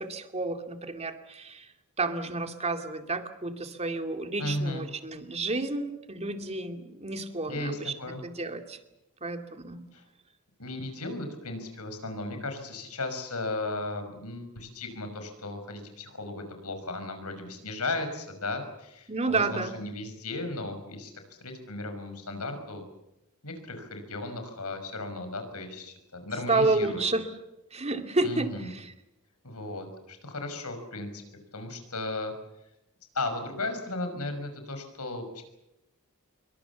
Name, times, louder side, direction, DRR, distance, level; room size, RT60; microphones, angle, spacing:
voice 1, 0.0-1.7 2.0-7.9 8.2-8.8 9.2-9.8 19.1-19.7 26.5-27.3 27.7-28.9, right 3 dB, 30° right, 6 dB, 2.4 m, -30 dB
voice 2, 4.4-4.9 7.5-8.2 9.9-10.0 10.6-22.8 23.4-27.1 28.2-28.7 29.4-31.2 31.5-32.3 33.1-35.4, left 2 dB, 85° left, 7 dB, 5.9 m, -35 dB
27.0 x 23.5 x 7.2 m, 0.90 s
head